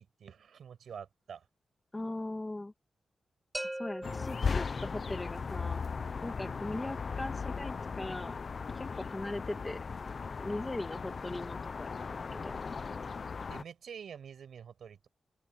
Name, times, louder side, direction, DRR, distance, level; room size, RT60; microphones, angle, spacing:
voice 1, 0.0-1.5 6.5-6.7 13.5-15.1, right 7 dB, 80° right, 6.7 m, -48 dB
voice 2, 1.9-2.7 3.7-5.8 6.2-8.3 8.7-9.8 10.4-12.6, left 2 dB, 15° left, 2.3 m, -39 dB
sound 1, 3.5-5.4, right 1 dB, 10° right, 1.5 m, -42 dB
sound 2, 4.0-13.6, left 5 dB, 40° left, 0.7 m, -37 dB
open air
wide cardioid pair, 170°, 0 cm